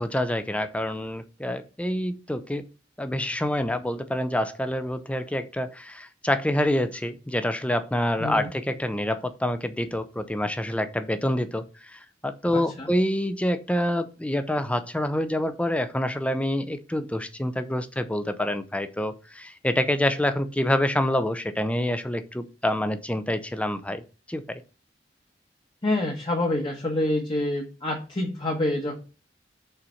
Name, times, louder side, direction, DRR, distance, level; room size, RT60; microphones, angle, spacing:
voice 1, 0.0-2.6 3.0-24.0 24.3-24.6, left 1 dB, 5° left, 10 dB, 0.5 m, -27 dB
voice 2, 8.2-8.5 12.5-12.9 25.8-29.0, left 1 dB, 30° left, 0 dB, 1.2 m, -27 dB
5.7 x 4.1 x 5.7 m, 0.34 s
head